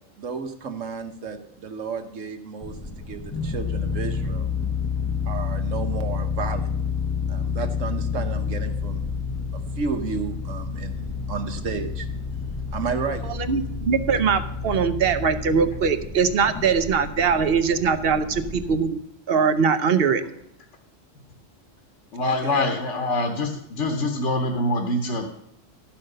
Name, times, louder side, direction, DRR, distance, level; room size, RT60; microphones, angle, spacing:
voice 1, 0.2-4.5 5.3-6.7 7.3-9.1 9.5-12.1 12.7-13.2 22.2-22.6, right 5 dB, 80° right, 6 dB, 1.4 m, -32 dB
sound 1, 2.6-18.8, left 5 dB, 20° left, 0.4 m, -29 dB
voice 2, 13.5-19.0 19.3-20.2, right 6 dB, 55° right, 11 dB, 0.9 m, -21 dB
voice 3, 22.1-25.3, left 2 dB, 70° left, 3 dB, 1.3 m, -25 dB
12.5 x 5.8 x 6.5 m, 0.77 s
omnidirectional pair, 1.3 m